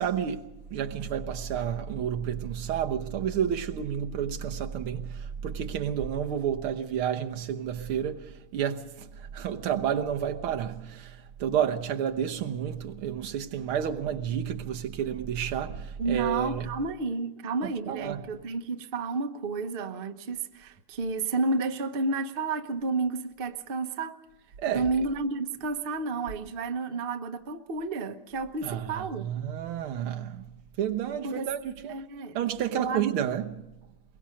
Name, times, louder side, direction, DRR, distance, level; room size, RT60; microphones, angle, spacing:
voice 1, 0.0-16.9 17.6-18.4 24.6-25.1 28.6-32.0 32.3-33.8, right 9 dB, 85° right, 2.0 m, -31 dB
voice 2, 16.0-24.2 24.7-29.3 31.2-31.5 31.9-32.4 32.7-33.0, right 3 dB, 35° right, 1.0 m, -31 dB
22.5 x 22.0 x 5.2 m
omnidirectional pair, 2.3 m